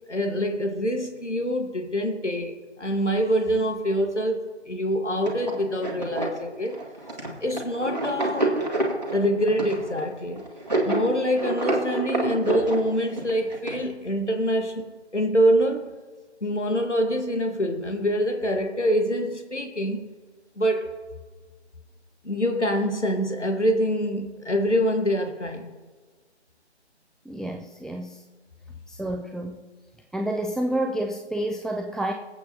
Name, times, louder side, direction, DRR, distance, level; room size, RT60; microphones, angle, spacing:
voice 1, 0.1-6.8 7.4-8.5 9.1-10.4 10.9-15.9 16.4-20.1 20.6-21.0 22.2-25.7, equal, 80° left, 1.6 m, -25 dB
sound 1, 5.2-13.8, right 2 dB, 35° right, 2.2 m, -28 dB
voice 2, 27.3-28.2 28.9-29.5 30.1-32.1, right 1 dB, ahead, 0.4 m, -29 dB
23.5 x 8.5 x 2.9 m
figure-of-eight pair, 175°, 34 cm